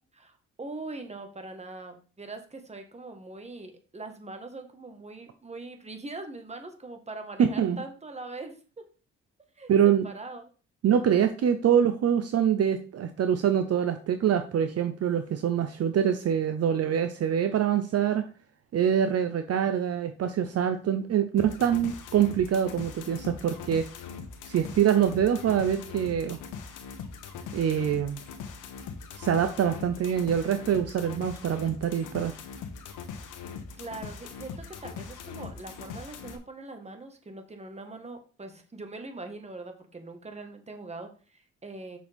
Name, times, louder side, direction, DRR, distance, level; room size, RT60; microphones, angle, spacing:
voice 1, 0.1-8.6 9.6-10.5 33.8-42.0, right 3 dB, 20° right, 6 dB, 1.6 m, -42 dB
voice 2, 7.4-7.8 9.7-10.1 10.8-18.3 18.7-23.9 24.4-26.4 27.5-28.2 29.2-32.3, right 9 dB, 55° right, 9 dB, 0.7 m, -25 dB
sound 1, 21.4-36.4, left 6 dB, 80° left, 1.3 m, -41 dB
7.4 x 6.3 x 3.6 m, 0.38 s
cardioid pair, 90°, 30 cm